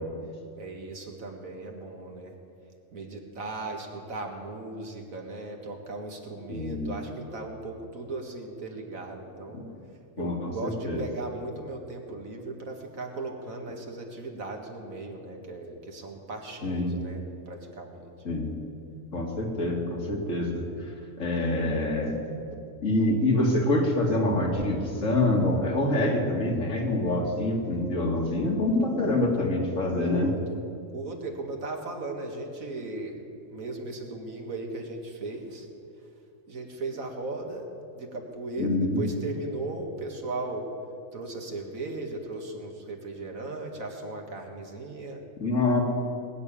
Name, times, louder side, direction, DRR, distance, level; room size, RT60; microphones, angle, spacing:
voice 1, 0.6-2.3 2.9-9.6 10.2-18.1 28.8-29.2 29.9-33.2 33.5-35.7 36.5-40.7 41.1-45.2, right 2 dB, 75° right, 2 dB, 2.3 m, -37 dB
voice 2, 6.5-6.9 9.5-9.6 10.2-11.1 16.6-17.0 18.2-18.6 19.1-20.9 21.2-22.2 22.8-30.3 38.6-39.0 45.4-45.8, left 2 dB, 65° left, 0 dB, 2.6 m, -26 dB
20.5 x 7.0 x 10.0 m, 2.5 s
omnidirectional pair, 1.4 m